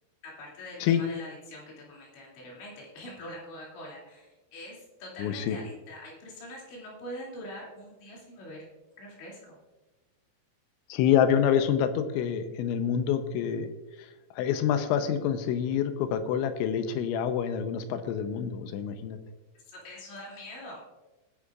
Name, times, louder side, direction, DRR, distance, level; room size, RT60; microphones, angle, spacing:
voice 1, 0.2-8.6 9.0-9.6 19.6-20.8, left 1 dB, 65° left, -4 dB, 4.9 m, -44 dB
voice 2, 5.2-5.6 10.9-13.7 14.0-14.1 14.4-19.2, left 8 dB, 80° left, 9 dB, 3.0 m, -27 dB
20.0 x 10.0 x 2.4 m, 1.1 s
omnidirectional pair, 5.7 m